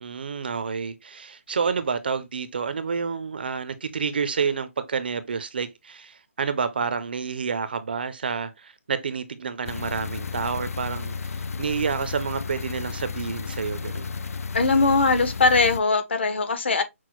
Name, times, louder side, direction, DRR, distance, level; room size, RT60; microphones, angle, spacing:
voice 1, 0.0-14.1, right 5 dB, 45° right, 0.4 m, -29 dB
sound 1, 9.7-15.8, left 5 dB, 90° left, 0.4 m, -33 dB
voice 2, 14.5-16.8, left 3 dB, 50° left, 0.8 m, -20 dB
5.9 x 2.1 x 2.9 m
hypercardioid pair, 175°, 8 cm